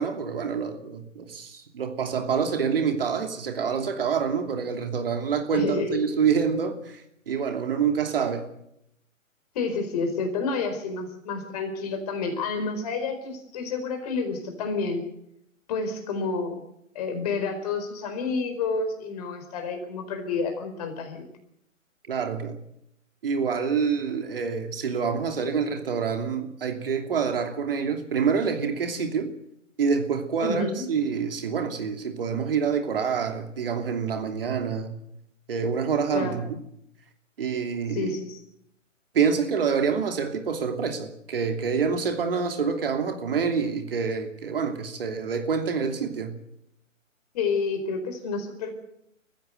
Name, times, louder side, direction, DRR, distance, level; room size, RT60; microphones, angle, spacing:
voice 1, 0.0-8.5 22.1-22.6 23.2-29.3 29.8-35.0 35.5-36.6 37.4-38.1 39.1-46.4, right 6 dB, 45° right, 5 dB, 2.9 m, -27 dB
voice 2, 5.5-6.0 9.5-15.0 15.7-16.6 16.9-21.3 30.4-30.9 36.1-36.4 37.9-38.4 47.3-48.7, left 4 dB, 30° left, 6 dB, 4.6 m, -29 dB
30.0 x 15.5 x 8.0 m, 0.76 s
figure-of-eight pair, 145°, 40 cm